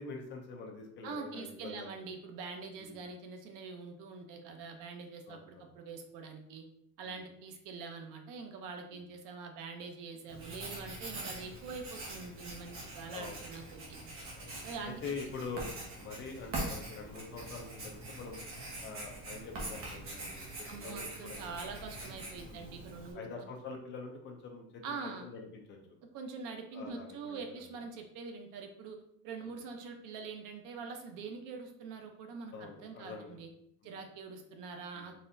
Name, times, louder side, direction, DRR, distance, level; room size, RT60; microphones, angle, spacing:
voice 1, 0.0-2.1 2.8-3.0 5.3-5.6 7.0-7.2 8.9-9.0 13.1-13.4 14.4-14.5 14.8-15.7 16.0-18.4 18.8-21.6 22.4-22.7 23.1-26.0 26.7-27.7 29.4-29.6 32.5-33.4 33.8-34.0 34.9-35.1, left 4 dB, 35° left, 1 dB, 0.5 m, -45 dB
voice 2, 1.0-6.6 7.0-14.0 14.6-15.0 20.7-23.5 24.8-25.3 26.1-29.0 29.2-33.5 33.8-35.2, right 4 dB, 65° right, 4 dB, 0.7 m, -44 dB
Writing, 10.3-23.1, right 2 dB, 40° right, 1.1 m, -44 dB
4.1 x 3.3 x 2.6 m, 0.74 s
cardioid pair, 180°, 35 cm